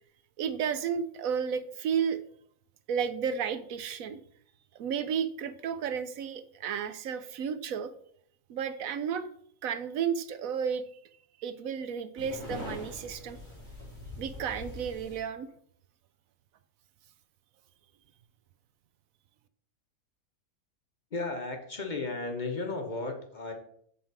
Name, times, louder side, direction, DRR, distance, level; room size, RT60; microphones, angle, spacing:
voice 1, 0.4-2.2 2.9-4.2 4.7-7.9 8.5-9.3 9.6-10.8 11.4-13.4 14.2-15.5, right 7 dB, 75° right, 11 dB, 1.0 m, -32 dB
sound 1, 12.2-15.2, left 2 dB, 10° right, 3.1 m, -43 dB
voice 2, 21.1-23.5, left 3 dB, 35° left, 3 dB, 1.1 m, -34 dB
7.3 x 5.4 x 4.6 m, 0.64 s
omnidirectional pair, 1.5 m